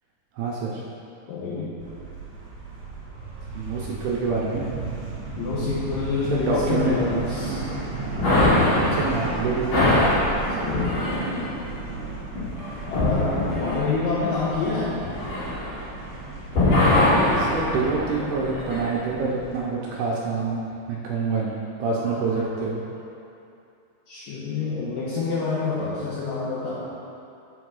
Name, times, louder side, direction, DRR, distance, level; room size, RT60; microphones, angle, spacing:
voice 1, 0.4-0.8 3.5-4.9 6.3-7.0 8.9-9.9 17.3-20.6 20.9-22.8, right 4 dB, 85° right, -4 dB, 2.4 m, -26 dB
voice 2, 1.3-1.7 5.4-7.6 10.6-11.0 12.9-15.1 21.8-22.4 24.1-26.8, left 4 dB, 80° left, -8 dB, 2.0 m, -27 dB
sound 1, 1.8-19.6, right 3 dB, 50° right, 1.8 m, -35 dB
sound 2, 8.2-16.2 16.5-18.8, left 2 dB, 50° left, 2.4 m, -23 dB
6.2 x 5.9 x 6.3 m, 2.6 s
omnidirectional pair, 5.3 m